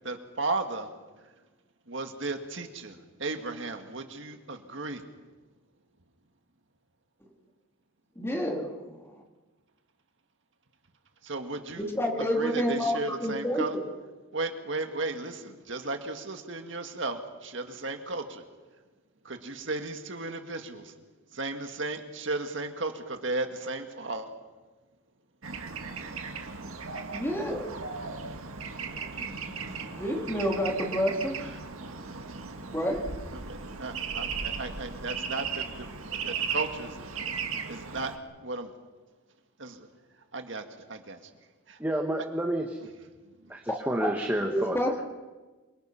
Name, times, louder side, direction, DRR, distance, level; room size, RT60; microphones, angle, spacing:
voice 1, 0.0-0.9 1.9-5.0 11.2-11.9 12.3-13.8 14.3-18.4 19.3-20.9 21.3-24.3 33.3-35.9 36.2-37.1 37.7-38.1 38.4-38.7 39.6-39.9 40.3-40.6 40.9-41.2 41.7-41.8, right 2 dB, 60° right, 6 dB, 1.9 m, -35 dB
voice 2, 8.1-9.2 11.8-13.7 27.1-27.7 28.8-31.4 32.7-33.1 44.0-44.1 44.5-45.0, equal, 10° left, 1 dB, 3.1 m, -30 dB
Bird / Traffic noise roadway noise, 25.4-38.2, right 5 dB, 85° right, 2.0 m, -36 dB
voice 3, 41.8-42.7 43.5-44.8, right 1 dB, 10° right, 2 dB, 1.5 m, -29 dB
27.5 x 24.0 x 5.8 m, 1.2 s
head